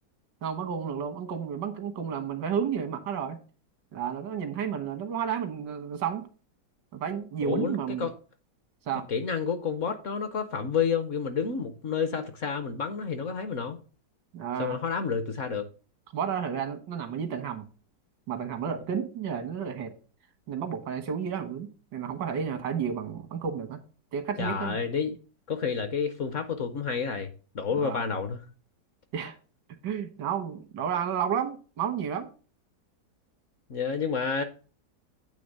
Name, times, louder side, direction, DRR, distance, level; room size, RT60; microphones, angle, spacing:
voice 1, 0.4-3.4 3.9-6.2 6.9-8.1 8.8-9.0 14.3-14.8 16.1-17.7 18.3-19.9 20.5-23.8 24.1-24.8 27.7-28.0 29.1-29.4 29.8-32.3, right 7 dB, 90° right, 1.8 m, -31 dB
voice 2, 7.4-8.1 9.1-13.8 14.6-15.7 24.4-25.2 25.5-28.4 33.7-34.4, left 6 dB, 55° left, 0.9 m, -30 dB
8.6 x 3.3 x 6.6 m
omnidirectional pair, 1.9 m